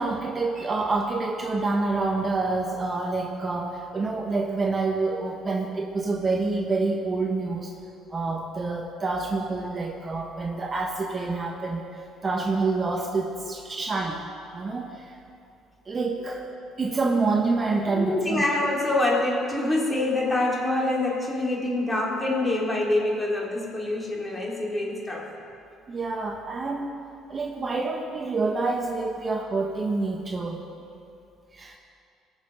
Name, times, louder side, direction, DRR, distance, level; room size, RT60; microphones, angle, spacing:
voice 1, 0.0-7.7 8.1-14.3 14.5-15.1 15.9-16.4 16.8-18.4 25.9-26.9 27.3-30.6 31.5-31.8, right 3 dB, 35° right, 2 dB, 1.2 m, -27 dB
voice 2, 17.9-25.3, left 2 dB, 15° left, -3 dB, 3.4 m, -25 dB
19.5 x 6.7 x 5.5 m, 2.6 s
supercardioid pair, 70°, 0 cm